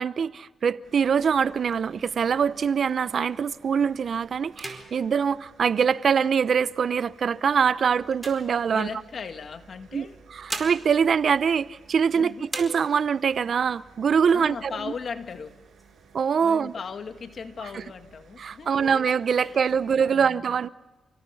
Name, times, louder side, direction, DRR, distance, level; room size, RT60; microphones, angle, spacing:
voice 1, 0.0-8.9 9.9-14.7 16.1-16.7 17.7-17.8 18.4-20.7, right 6 dB, 65° right, 0.7 m, -24 dB
sound 1, 0.8-19.9, right 5 dB, 80° right, 6.7 m, -55 dB
sound 2, 1.4-3.4 3.9-4.1 4.4-6.4 7.0-9.2 10.1-12.1 12.4-13.3 13.7-13.8 14.1-14.8 15.2-16.1, right 2 dB, 20° right, 4.6 m, -42 dB
voice 2, 8.7-10.2 12.1-12.5 14.3-15.6 16.4-19.0 19.4-20.4, left 5 dB, 60° left, 2.1 m, -38 dB
30.0 x 17.5 x 7.1 m
cardioid pair, 65°, 0 cm